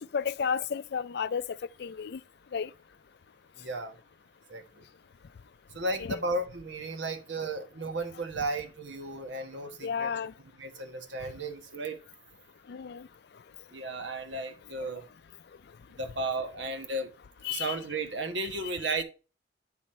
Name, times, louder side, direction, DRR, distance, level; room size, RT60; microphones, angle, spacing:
voice 1, 0.0-1.4 1.8-2.2 2.5-2.7 6.0-6.2 9.8-10.3 12.7-13.1 17.4-17.8 19.0-19.1, left 7 dB, 60° left, 0.4 m, -32 dB
voice 2, 3.6-4.0 4.5-4.8 5.7-10.1 10.6-12.0 13.7-15.0 16.0-17.1 17.5-19.0, right 2 dB, 75° right, 1.3 m, -34 dB
10.5 x 4.2 x 4.3 m
head